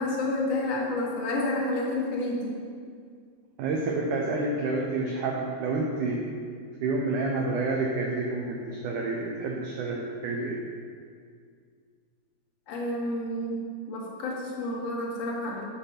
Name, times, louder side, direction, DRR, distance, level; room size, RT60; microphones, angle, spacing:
voice 1, 0.0-2.6 12.7-15.6, left 1 dB, 55° left, -4 dB, 2.1 m, -30 dB
voice 2, 3.6-6.3 6.8-10.6, right 3 dB, 85° right, -1 dB, 1.7 m, -29 dB
7.3 x 6.6 x 5.7 m, 2.1 s
omnidirectional pair, 4.5 m